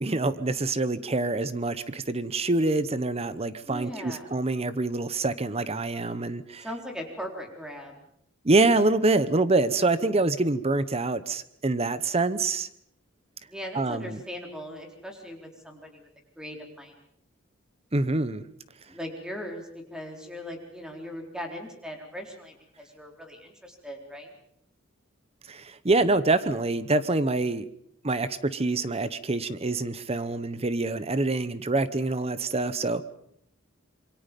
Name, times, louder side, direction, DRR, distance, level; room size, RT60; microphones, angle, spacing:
voice 1, 0.0-6.6 8.4-12.7 13.7-14.2 17.9-18.4 25.5-27.7 28.0-33.1, right 2 dB, 30° right, 14 dB, 0.9 m, -26 dB
voice 2, 3.7-4.3 6.6-8.0 9.7-10.1 13.5-16.1 16.4-17.0 18.9-24.3, equal, 5° right, 2 dB, 4.1 m, -39 dB
27.0 x 23.5 x 5.3 m, 0.72 s
head